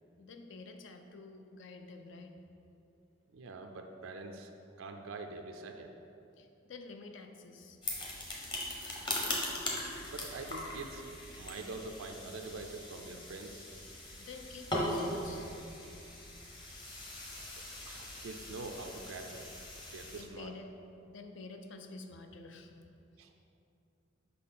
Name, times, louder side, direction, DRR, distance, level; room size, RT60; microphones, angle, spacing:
voice 1, 0.2-2.3 6.4-7.8 14.2-15.5 20.2-20.8 21.1-22.8, left 3 dB, 65° left, 5 dB, 0.5 m, -49 dB
voice 2, 3.3-4.5 4.8-5.9 9.0-9.4 9.9-11.0 11.4-13.7 17.3-17.5 17.9-19.5 19.9-20.5 23.2-23.4, right 3 dB, 90° right, 4 dB, 0.5 m, -45 dB
sound 1, 7.8-20.2, left 1 dB, 25° left, 0.9 m, -40 dB
5.5 x 4.3 x 5.5 m, 2.7 s
head